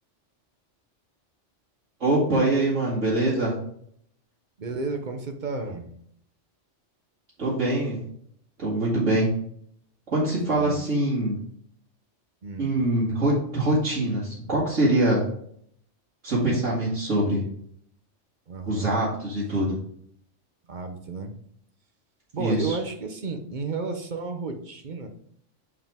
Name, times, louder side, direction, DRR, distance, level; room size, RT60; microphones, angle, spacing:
voice 1, 2.0-3.5 7.4-8.0 8.6-9.3 10.1-11.4 12.6-15.2 16.2-17.4 18.7-19.8 22.4-22.8, right 1 dB, 80° right, -9 dB, 2.4 m, -24 dB
voice 2, 4.6-5.9 10.5-10.8 12.4-12.7 18.5-18.9 20.7-21.3 22.3-25.1, right 4 dB, 45° right, 5 dB, 0.9 m, -32 dB
7.7 x 4.9 x 3.5 m, 0.65 s
omnidirectional pair, 1.3 m